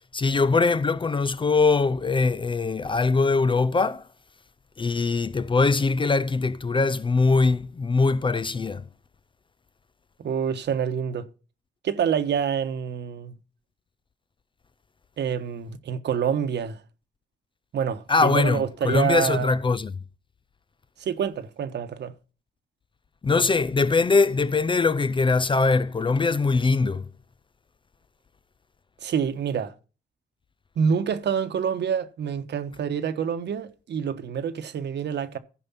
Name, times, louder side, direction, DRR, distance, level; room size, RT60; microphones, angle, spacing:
voice 1, 0.1-4.0 4.8-8.8 18.1-20.0 23.2-27.1, left 4 dB, 25° left, 0.5 m, -22 dB
voice 2, 10.2-11.3 11.8-13.3 15.2-16.8 17.7-19.5 21.0-22.1 29.0-29.7 30.8-35.4, right 7 dB, 60° right, 1.3 m, -27 dB
15.5 x 5.2 x 5.8 m
cardioid pair, 90°, 20 cm